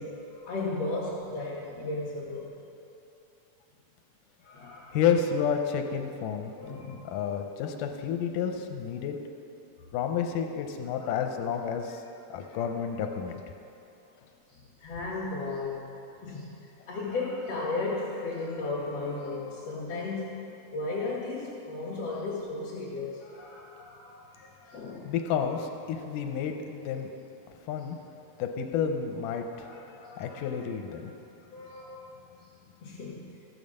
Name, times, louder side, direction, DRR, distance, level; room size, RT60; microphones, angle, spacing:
voice 1, 0.0-2.5 4.4-5.0 6.6-7.1 8.5-8.6 11.0-11.4 12.4-13.1 14.5-16.6 16.9-20.5 20.7-25.7 29.5-31.0 31.5-32.1 32.8-33.4, left 3 dB, 55° left, -8 dB, 2.6 m, -36 dB
voice 2, 4.9-6.5 7.0-9.2 9.9-12.0 12.3-13.4 25.1-27.1 27.7-28.0 28.4-31.1, left 7 dB, 90° left, 5 dB, 2.2 m, -30 dB
15.0 x 7.2 x 6.5 m, 2.9 s
omnidirectional pair, 3.7 m